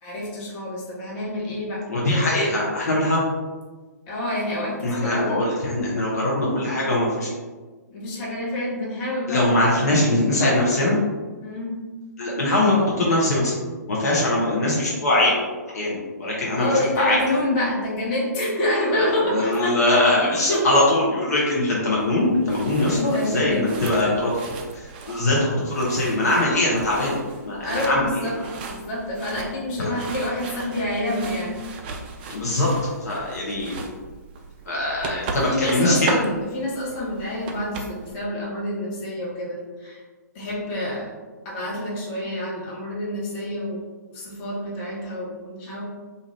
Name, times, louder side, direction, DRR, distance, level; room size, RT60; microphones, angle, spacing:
voice 1, 0.0-1.8 4.1-5.4 6.3-6.7 7.9-10.1 11.4-11.8 16.4-20.7 22.9-24.3 27.6-28.4 28.7-31.6 35.5-40.0 40.3-41.1 41.4-43.8 44.1-45.8, left 1 dB, 30° left, -5 dB, 1.0 m, -28 dB
voice 2, 1.9-3.2 4.8-7.3 9.3-11.0 12.2-13.5 13.9-15.3 15.7-17.2 18.9-24.3 24.7-27.2 27.4-28.3 29.8-30.0 32.3-32.7 33.0-33.8 34.7-36.1, left 1 dB, 65° left, -5 dB, 0.7 m, -22 dB
sound 1, 22.0-38.1, right 3 dB, 30° right, 0.3 m, -36 dB
2.7 x 2.4 x 3.1 m, 1.3 s
figure-of-eight pair, 125°, 9 cm